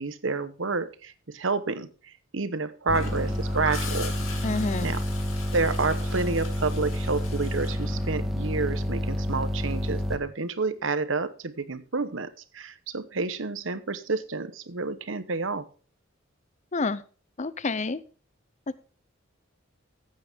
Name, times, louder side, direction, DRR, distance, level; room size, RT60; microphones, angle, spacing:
voice 1, 0.0-4.2 4.8-5.0 5.5-15.7, right 3 dB, 70° right, 13 dB, 1.0 m, -29 dB
Gurgling / Toilet flush, 2.9-8.7 10.7-10.9, left 4 dB, 85° left, 2.9 m, -40 dB
sound 1, 2.9-10.2, equal, ahead, 1.5 m, -29 dB
voice 2, 4.4-5.0 16.7-17.0 17.4-18.0, left 3 dB, 35° left, 16 dB, 0.7 m, -28 dB
15.0 x 8.8 x 3.6 m, 0.37 s
head